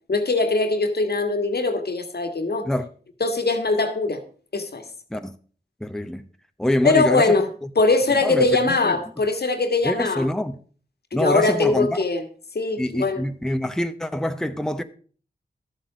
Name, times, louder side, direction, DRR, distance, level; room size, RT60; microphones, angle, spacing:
voice 1, 0.1-2.7 3.2-4.2 4.5-4.9 6.8-7.5 7.8-10.3 11.1-12.2 12.6-13.2, left 3 dB, 70° left, 1.6 m, -21 dB
voice 2, 5.8-6.2 6.6-7.4 8.2-9.0 9.8-10.6 11.1-12.0 12.8-14.8, left 1 dB, 5° left, 0.8 m, -25 dB
13.0 x 7.5 x 4.9 m
wide cardioid pair, 55°, 17 cm